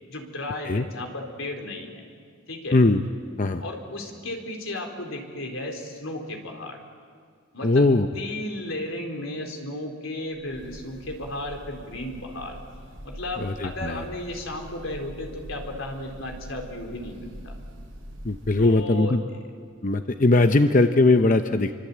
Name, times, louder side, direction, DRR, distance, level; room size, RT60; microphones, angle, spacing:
voice 1, 0.1-2.0 2.5-2.8 3.6-6.8 7.5-7.8 8.1-12.6 13.0-17.5 18.6-19.1, left 1 dB, 85° left, 2 dB, 4.1 m, -34 dB
voice 2, 2.7-3.0 3.4-3.6 7.6-8.1 13.4-14.0 18.2-19.2 19.8-21.7, left 2 dB, 40° left, 8 dB, 0.7 m, -20 dB
Breathing / Bird, 10.3-18.9, equal, 65° right, 6.5 m, -43 dB
28.0 x 24.5 x 8.7 m, 2.1 s
head